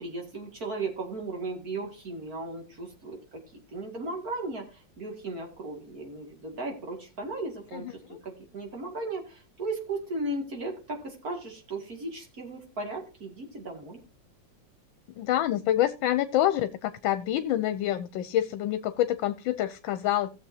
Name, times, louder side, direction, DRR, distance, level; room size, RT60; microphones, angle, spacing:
voice 1, 0.0-3.4 3.7-14.0, right 2 dB, 50° right, 2.8 m, -36 dB
voice 2, 7.7-8.2 15.2-20.3, left 13 dB, 85° left, 1.4 m, -27 dB
17.0 x 7.0 x 2.8 m
omnidirectional pair, 2.1 m